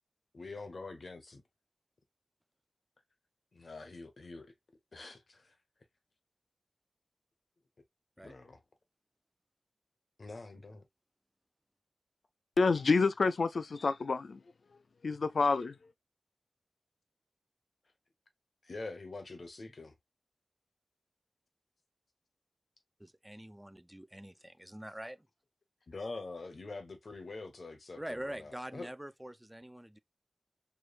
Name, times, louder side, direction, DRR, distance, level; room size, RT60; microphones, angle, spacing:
voice 1, 0.3-1.4 3.5-4.5 4.9-5.5 8.2-8.6 10.2-10.8 18.6-19.9 25.9-28.9, left 3 dB, 70° left, 1.1 m, -45 dB
voice 2, 12.6-14.4 15.0-15.8, left 4 dB, 90° left, 0.3 m, -28 dB
voice 3, 23.0-25.2 28.0-30.0, right 1 dB, 10° right, 0.4 m, -44 dB
4.7 x 3.3 x 2.4 m
wide cardioid pair, 60°, 0 cm